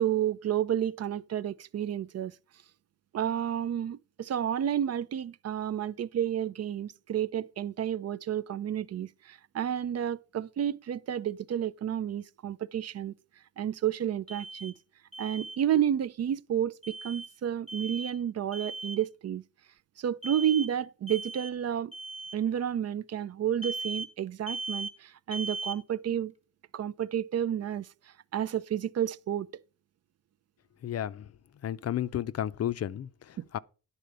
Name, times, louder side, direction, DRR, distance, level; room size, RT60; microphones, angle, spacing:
voice 1, 0.0-2.4 3.1-13.1 13.6-14.7 15.2-19.4 20.0-21.9 22.3-26.3 26.7-29.5 33.4-33.5, right 10 dB, 45° right, 0.5 m, -31 dB
Alarm, 14.3-14.7 15.1-15.6 16.8-17.3 17.7-18.2 18.5-19.0 20.2-20.7 21.1-21.5 21.9-22.4 23.6-24.1 24.5-24.9 25.3-25.8, right 3 dB, 15° right, 1.2 m, -38 dB
voice 2, 30.8-31.3 31.6-33.6, left 11 dB, 45° left, 0.5 m, -33 dB
10.5 x 4.2 x 6.6 m
cardioid pair, 120°, 35 cm